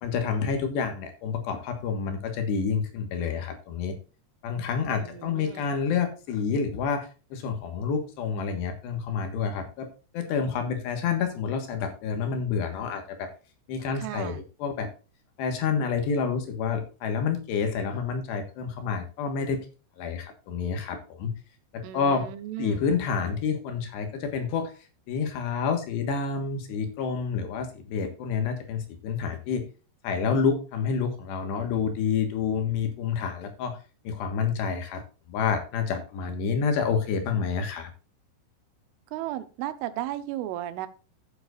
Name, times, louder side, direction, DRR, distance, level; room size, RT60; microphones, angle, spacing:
voice 1, 0.0-4.0 4.4-9.9 10.1-13.3 13.7-14.9 15.4-19.6 20.0-21.3 21.7-22.3 22.6-24.7 25.1-29.7 30.0-33.8 34.0-35.0 35.3-37.9, left 6 dB, 70° left, 6 dB, 3.4 m, -28 dB
voice 2, 5.0-5.7 14.0-14.4 21.8-22.8 39.1-40.9, right 13 dB, 80° right, 11 dB, 3.4 m, -35 dB
15.0 x 7.7 x 2.5 m, 0.35 s
omnidirectional pair, 5.7 m